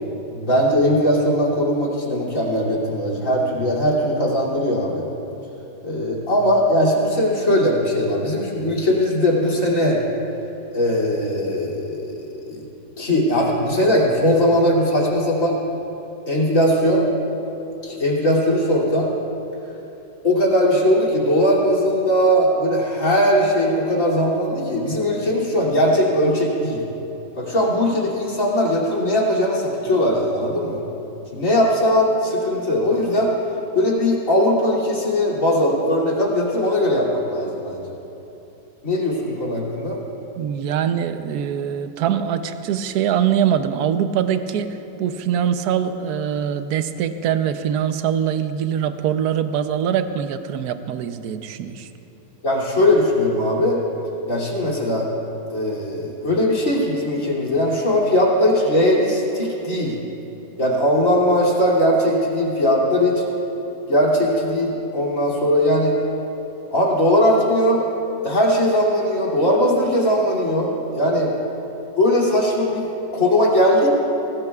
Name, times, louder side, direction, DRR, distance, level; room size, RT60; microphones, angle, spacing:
voice 1, 0.3-5.1 5.8-10.0 10.7-12.6 13.0-15.6 16.3-17.0 17.8-19.1 20.2-26.8 27.4-30.8 31.3-33.3 33.7-37.8 38.8-40.0 52.4-53.8 54.3-55.1 55.5-59.9 60.6-63.2 63.9-66.0 66.7-67.9 68.2-71.3 72.0-72.9 73.1-73.9, equal, 45° left, -4 dB, 3.3 m, -19 dB
voice 2, 40.4-51.9, right 9 dB, 70° right, 9 dB, 1.2 m, -23 dB
24.0 x 18.5 x 2.4 m, 3.0 s
omnidirectional pair, 1.9 m